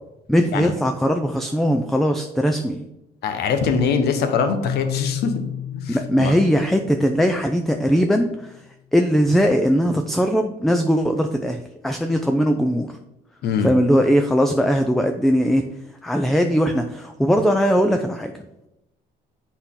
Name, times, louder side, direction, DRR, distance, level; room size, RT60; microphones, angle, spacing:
voice 1, 0.3-2.9 5.9-8.5 8.9-12.9 13.6-15.6 16.0-18.3, equal, ahead, 5 dB, 0.4 m, -20 dB
voice 2, 3.2-5.4 5.7-6.3 13.4-13.7, left 5 dB, 75° left, 7 dB, 1.0 m, -23 dB
Keyboard (musical), 4.6-8.3, left 10 dB, 60° left, 0.6 m, -32 dB
8.0 x 4.3 x 3.8 m, 0.90 s
cardioid pair, 110°, 17 cm